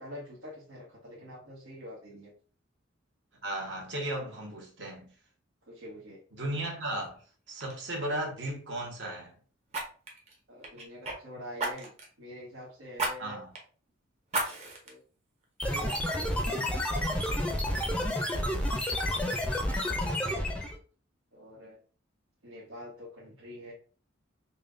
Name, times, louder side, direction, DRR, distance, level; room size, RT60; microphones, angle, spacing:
voice 1, 0.0-2.3 5.7-6.2 10.5-11.9 12.2-13.4 14.4-15.0 15.6-17.1 18.0-18.2 19.1-20.5 21.3-21.8 22.4-23.7, equal, 85° right, 1.2 m, -46 dB
voice 2, 3.4-5.1 6.4-7.2 7.5-9.3 13.2-13.5, right 1 dB, 65° right, 1.2 m, -35 dB
Fire, 7.0-7.2 7.6-7.8 9.7-11.2 11.6-12.1 13.0-13.1 13.5-13.6 14.3-14.9 15.4-15.5, right 2 dB, 35° right, 0.8 m, -34 dB
sound 1, 15.6-20.8, left 1 dB, 5° left, 0.5 m, -30 dB
5.4 x 2.2 x 2.5 m
head